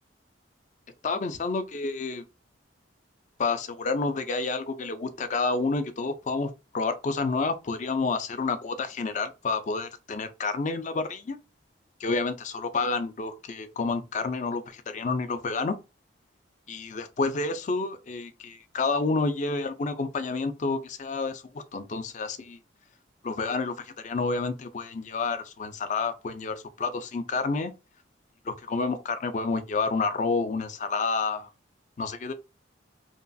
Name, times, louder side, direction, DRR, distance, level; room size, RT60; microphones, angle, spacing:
voice 1, 1.0-2.2 3.4-11.4 12.0-15.8 16.7-22.6 23.2-27.7 28.4-31.5 32.0-32.3, left 3 dB, 40° left, 0.4 m, -29 dB
2.9 x 2.3 x 2.5 m
head